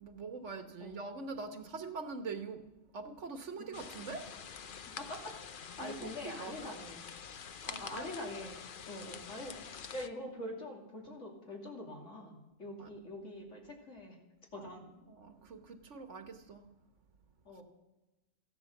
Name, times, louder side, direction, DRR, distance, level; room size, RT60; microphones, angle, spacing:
voice 1, 0.0-2.6 2.9-4.3 5.8-6.8 7.6-8.1 12.8-12.9 14.5-14.8 15.0-16.7 17.5-17.6, right 4 dB, 70° right, 8 dB, 1.5 m, -44 dB
the sound of medium stream in the winter forest - rear, 3.7-10.1, left 7 dB, 50° left, 0.8 m, -47 dB
voice 2, 4.9-5.3 5.8-7.0 7.8-8.6 8.9-14.2 14.5-14.8 17.4-17.6, left 1 dB, 70° left, 0 dB, 3.1 m, -44 dB
15.0 x 10.5 x 7.2 m, 1.0 s
omnidirectional pair, 1.3 m